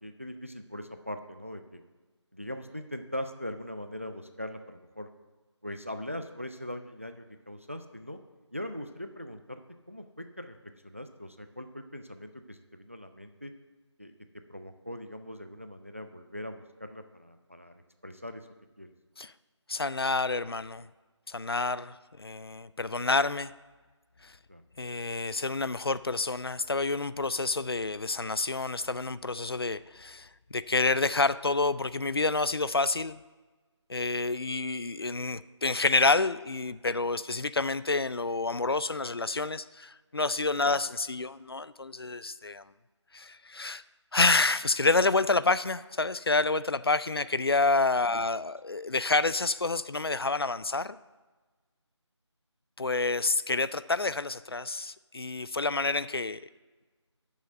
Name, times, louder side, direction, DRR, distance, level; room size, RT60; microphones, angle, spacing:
voice 1, 0.0-1.8 2.3-5.1 5.6-8.2 8.5-9.6 9.9-10.6 10.8-13.5 14.0-14.1 14.5-18.5 18.8-18.9 24.5-24.6 40.6-40.8, left 1 dB, 25° right, 8 dB, 0.4 m, -41 dB
voice 2, 19.7-20.9 21.3-23.5 24.2-24.3 24.8-33.2 33.9-42.6 43.1-43.8 44.1-51.0 52.8-56.4, left 3 dB, 55° left, 16 dB, 0.4 m, -28 dB
7.0 x 6.3 x 7.8 m, 1.3 s
figure-of-eight pair, 165°, 15 cm